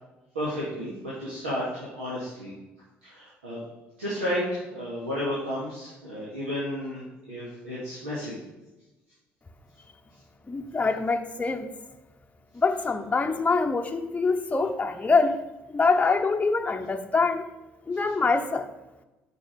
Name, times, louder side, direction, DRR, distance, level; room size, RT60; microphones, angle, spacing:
voice 1, 0.3-2.5 3.0-3.6 4.0-7.0 7.3-8.3, equal, 85° right, -9 dB, 2.4 m, -32 dB
voice 2, 10.5-11.7 12.5-15.4 15.7-17.4 17.9-18.7, left 4 dB, 20° left, 4 dB, 0.8 m, -24 dB
8.8 x 5.9 x 5.3 m, 1.0 s
figure-of-eight pair, 50°, 6 cm